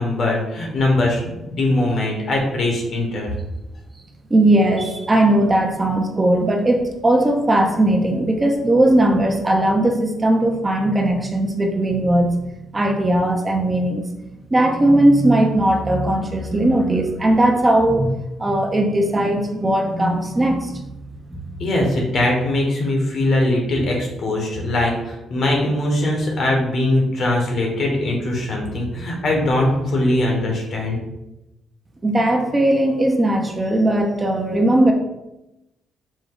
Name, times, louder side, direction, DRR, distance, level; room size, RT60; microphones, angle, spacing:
voice 1, 0.0-3.3 21.6-31.0, left 1 dB, 60° left, 0 dB, 1.3 m, -21 dB
voice 2, 4.3-14.0 14.5-18.1 18.4-20.8 21.3-21.4 32.0-34.9, right 1 dB, 25° right, 2 dB, 0.7 m, -18 dB
5.1 x 2.3 x 3.9 m, 0.94 s
cardioid pair, 90°, 0 cm